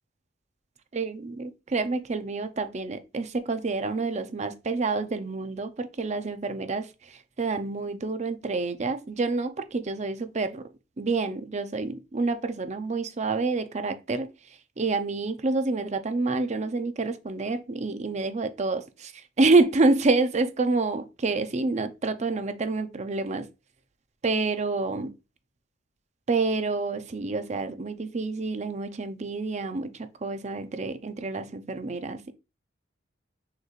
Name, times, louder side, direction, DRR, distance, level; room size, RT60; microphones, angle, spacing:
voice 1, 0.9-10.6 11.0-14.3 14.8-23.5 24.2-25.1 26.3-32.3, right 3 dB, 40° right, 0.5 m, -28 dB
6.4 x 3.1 x 2.4 m
head